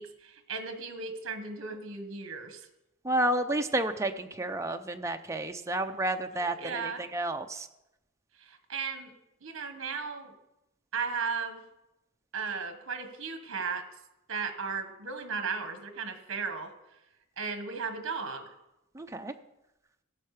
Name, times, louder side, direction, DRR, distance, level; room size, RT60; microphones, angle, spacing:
voice 1, 0.0-2.7 6.3-7.0 8.4-9.1 9.4-10.3 10.9-11.6 12.3-13.8 14.3-16.7 17.4-18.4, right 5 dB, 60° right, 7 dB, 1.4 m, -35 dB
voice 2, 3.0-7.7 18.9-19.3, right 1 dB, 15° right, 6 dB, 0.6 m, -31 dB
16.0 x 6.6 x 4.9 m, 0.91 s
head